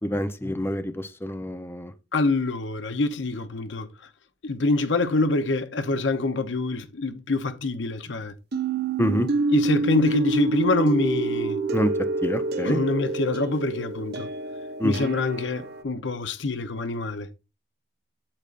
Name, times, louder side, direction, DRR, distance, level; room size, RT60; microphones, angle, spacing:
voice 1, 0.0-1.9 9.0-9.3 11.7-11.9 12.2-12.8 14.8-15.1, equal, 15° left, 0.7 m, -26 dB
voice 2, 2.1-3.9 4.4-8.3 9.5-11.6 12.6-14.3 14.8-17.3, left 2 dB, 70° left, 0.8 m, -25 dB
sound 1, 8.5-15.8, right 3 dB, 60° right, 0.9 m, -27 dB
8.7 x 8.1 x 2.5 m
head